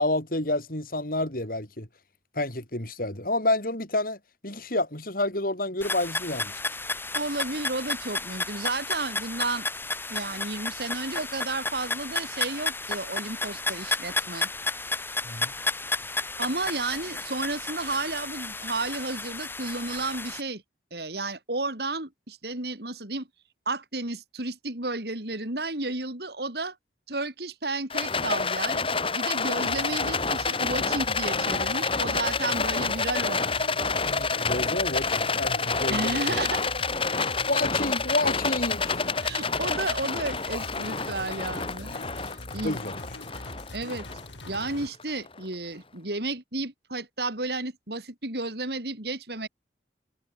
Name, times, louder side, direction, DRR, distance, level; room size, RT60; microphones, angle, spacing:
voice 1, 0.0-1.9 2.3-4.2 4.4-6.6 15.2-15.5 34.0-36.4 37.5-39.0 42.5-42.9, left 2 dB, 50° left, 4.9 m, -29 dB
sound 1, 5.8-20.4, left 3 dB, 10° left, 2.7 m, -32 dB
voice 2, 7.1-9.7 10.1-14.5 16.4-20.6 20.9-23.3 23.7-26.8 27.1-28.8 29.1-33.9 35.9-36.6 39.2-42.8 43.7-44.1 44.5-49.5, right 2 dB, 60° right, 3.7 m, -32 dB
Rattle, 27.9-45.3, left 4 dB, 30° left, 6.2 m, -28 dB
sound 2, 29.7-44.9, left 1 dB, 80° left, 5.5 m, -42 dB
head